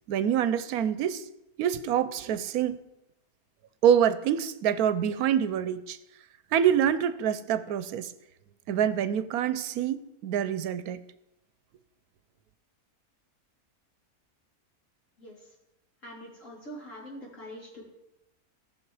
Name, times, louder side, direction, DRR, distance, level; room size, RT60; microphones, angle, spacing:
voice 1, 0.1-1.2 1.6-2.8 3.8-6.0 6.5-8.1 8.7-11.0, right 9 dB, 85° right, 1.1 m, -26 dB
voice 2, 15.2-15.5 16.0-17.8, equal, 60° left, 3.8 m, -44 dB
18.0 x 6.2 x 4.7 m
omnidirectional pair, 1.5 m